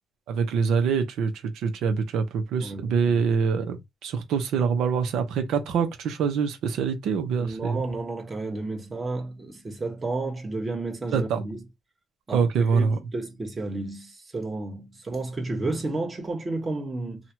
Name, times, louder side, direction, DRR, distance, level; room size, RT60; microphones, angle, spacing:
voice 1, 0.3-3.8 4.0-7.8 11.1-11.4 12.3-13.0, right 6 dB, 85° right, 0.9 m, -25 dB
voice 2, 2.6-3.2 7.4-11.6 12.3-17.2, right 2 dB, 30° right, 1.2 m, -32 dB
2.9 x 2.4 x 2.9 m
cardioid pair, 90°, 0 cm